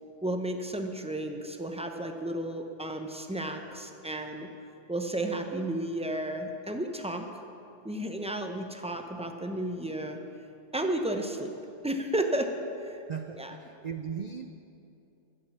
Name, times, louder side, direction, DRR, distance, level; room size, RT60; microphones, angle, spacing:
voice 1, 0.2-4.5 4.9-7.3 7.8-10.2 10.7-11.5 11.8-12.5 12.8-13.0 13.4-13.6, right 1 dB, 10° right, 5 dB, 0.4 m, -32 dB
voice 2, 13.1-14.5, right 7 dB, 85° right, 7 dB, 0.3 m, -37 dB
14.5 x 7.4 x 7.1 m, 2.7 s
omnidirectional pair, 1.4 m